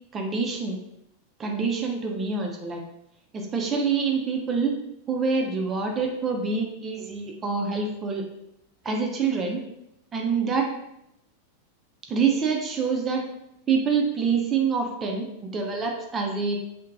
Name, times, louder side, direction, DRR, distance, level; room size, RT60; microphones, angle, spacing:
voice 1, 0.1-0.8 1.4-2.8 3.3-4.7 5.1-8.2 8.8-9.6 10.1-10.7 12.1-13.3 13.7-16.6, right 5 dB, 25° right, 1 dB, 0.4 m, -26 dB
2.7 x 2.1 x 2.5 m, 0.81 s
figure-of-eight pair, 90°, 0 cm